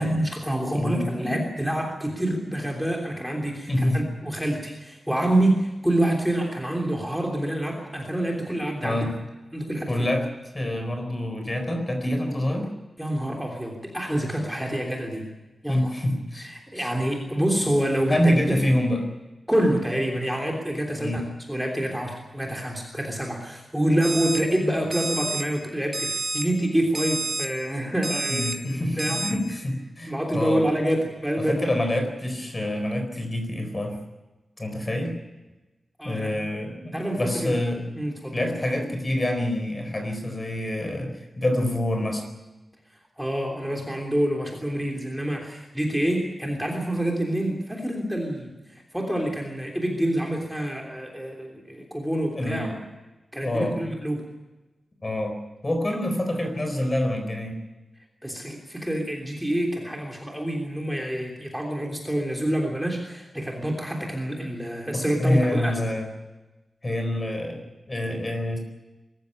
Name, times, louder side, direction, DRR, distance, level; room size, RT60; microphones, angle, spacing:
voice 1, 0.0-9.1 9.5-10.1 13.0-15.2 15.6-15.9 16.4-18.6 19.5-28.5 29.0-29.2 30.0-31.7 36.0-36.5 36.9-37.5 38.0-38.5 43.2-52.7 53.3-54.2 58.2-65.8, right 1 dB, 5° right, 0 dB, 3.2 m, -27 dB
voice 2, 0.7-1.4 3.7-4.0 8.8-9.1 9.9-10.3 10.5-12.7 15.7-16.5 16.8-16.9 18.1-19.1 21.0-21.2 28.3-30.6 31.4-34.0 34.6-35.1 36.0-37.8 38.3-42.2 52.3-52.8 53.4-53.8 55.0-55.4 55.6-57.6 64.9-66.1 66.8-68.6, left 1 dB, 25° left, 5 dB, 4.3 m, -26 dB
Alarm, 24.0-24.4 24.9-25.4 25.9-26.4 26.9-27.4 28.0-28.5 29.0-29.3, right 3 dB, 35° right, 2.7 m, -29 dB
23.0 x 14.5 x 9.8 m, 1.1 s
wide cardioid pair, 160°, 0 cm